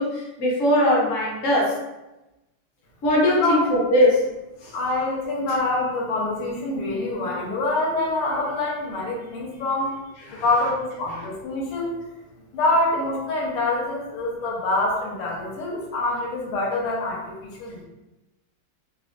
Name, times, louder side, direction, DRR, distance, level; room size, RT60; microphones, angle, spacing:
voice 1, 0.0-1.7 3.0-4.2 4.6-4.7 5.2-5.3 10.3-10.4, left 1 dB, 70° left, -5 dB, 0.7 m, -20 dB
voice 2, 4.7-9.9 10.3-11.9 12.5-17.8, left 2 dB, 85° left, -3 dB, 1.6 m, -25 dB
3.7 x 2.1 x 2.5 m, 1.0 s
omnidirectional pair, 2.4 m